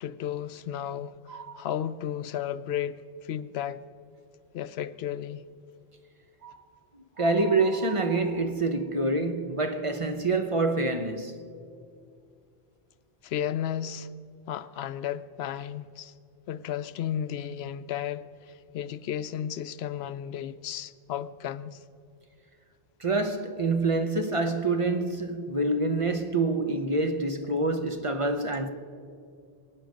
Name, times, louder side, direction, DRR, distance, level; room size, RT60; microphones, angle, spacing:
voice 1, 0.0-3.8 4.5-5.4 13.2-14.1 14.5-16.1 16.5-21.8, left 10 dB, 85° left, 0.8 m, -34 dB
sound 1, 1.3-1.8 2.3-2.4 6.4-6.7 7.1-9.1, right 7 dB, 90° right, 1.5 m, -45 dB
voice 2, 7.2-11.4 23.0-28.7, right 2 dB, 35° right, 0.8 m, -26 dB
22.5 x 9.2 x 6.4 m
omnidirectional pair, 1.0 m